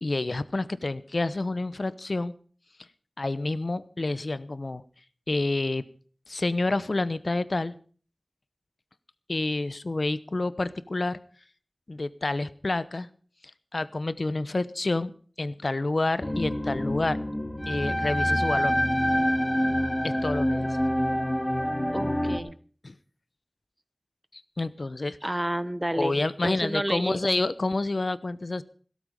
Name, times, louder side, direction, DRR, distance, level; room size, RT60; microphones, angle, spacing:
voice 1, 0.0-2.3 3.2-4.8 5.3-5.8 6.3-7.7 9.3-11.2 11.9-13.1 13.7-15.1 15.4-17.2 17.7-18.8 20.0-20.8 22.8-22.9 24.3-25.2 25.9-28.6, left 2 dB, 70° left, 15 dB, 0.9 m, -28 dB
sound 1, 16.2-22.4, equal, 25° left, 2.9 m, -26 dB
voice 2, 21.9-22.5 25.2-27.4, right 1 dB, 20° right, 15 dB, 1.1 m, -30 dB
16.5 x 13.5 x 5.1 m, 0.41 s
wide cardioid pair, 50°, 0 cm